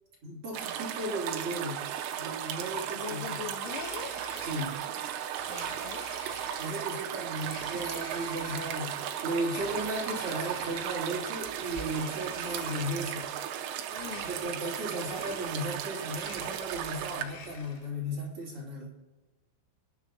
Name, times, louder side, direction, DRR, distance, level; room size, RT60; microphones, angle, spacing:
voice 1, 0.2-1.8 2.2-3.4 4.4-4.8 6.6-13.3 14.2-18.9, right 1 dB, 35° right, -4 dB, 2.8 m, -35 dB
sound 1, 0.5-17.2, right 9 dB, 85° right, 2.8 m, -36 dB
voice 2, 2.9-4.2 5.5-6.1 13.9-14.3, left 8 dB, 80° left, 7 dB, 3.3 m, -42 dB
Domestic sounds home sounds, 3.6-4.9 5.4-6.8 7.3-8.9 9.4-11.2 11.6-13.3 13.9-14.8 15.0-15.8 16.1-18.0, left 4 dB, 60° left, 2.6 m, -48 dB
25.0 x 10.0 x 2.8 m, 1.2 s
omnidirectional pair, 5.5 m